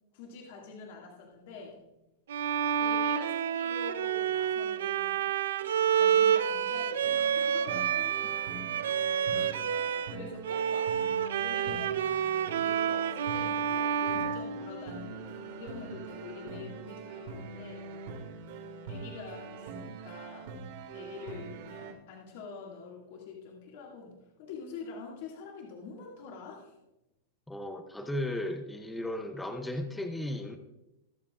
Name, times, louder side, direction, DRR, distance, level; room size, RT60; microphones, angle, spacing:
voice 1, 0.1-1.8 2.8-5.2 6.0-8.6 10.1-12.3 12.6-17.9 18.8-20.5 20.9-26.7, left 4 dB, 50° left, -2 dB, 2.1 m, -46 dB
Bowed string instrument, 2.3-10.2 10.4-15.2, right 8 dB, 85° right, 0.6 m, -29 dB
sound 1, 7.0-21.9, right 4 dB, 55° right, 2.1 m, -43 dB
voice 2, 9.3-10.1 27.5-30.6, left 1 dB, 5° left, 6 dB, 0.6 m, -36 dB
20.5 x 7.3 x 2.4 m, 0.91 s
supercardioid pair, 170°, 0 cm